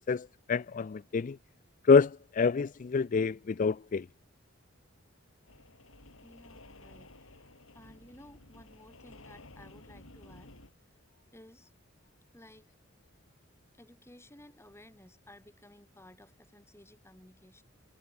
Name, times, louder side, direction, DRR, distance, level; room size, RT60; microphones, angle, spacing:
voice 1, 0.1-1.4 1.8-4.1, left 5 dB, 40° left, 0.4 m, -26 dB
sound 1, 5.5-10.7, left 2 dB, 85° left, 4.9 m, -54 dB
voice 2, 6.2-7.5 7.7-10.6 11.3-11.7 12.3-12.7 13.8-17.6, left 1 dB, 15° left, 2.8 m, -56 dB
head